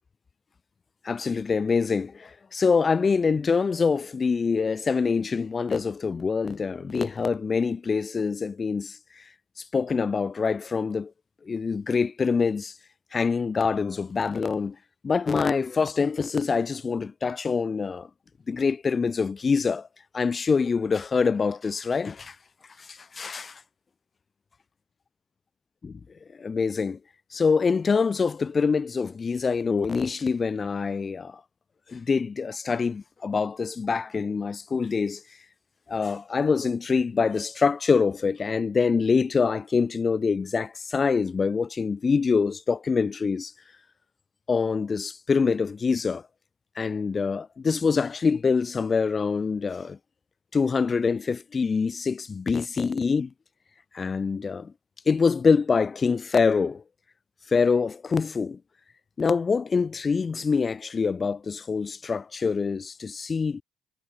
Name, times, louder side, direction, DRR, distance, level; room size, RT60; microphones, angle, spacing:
voice 1, 1.0-9.2 9.7-11.1 11.4-12.7 13.1-14.8 15.0-18.1 18.5-19.9 20.1-22.4 22.8-23.6 25.8-25.9 26.4-27.0 27.3-31.4 31.9-35.2 35.9-43.5 44.5-46.2 46.8-50.0 50.5-53.3 53.9-54.7 55.1-56.8 57.5-58.6 59.2-63.6, left 5 dB, 35° left, 0.4 m, -25 dB
cardioid pair, 90°, 0 cm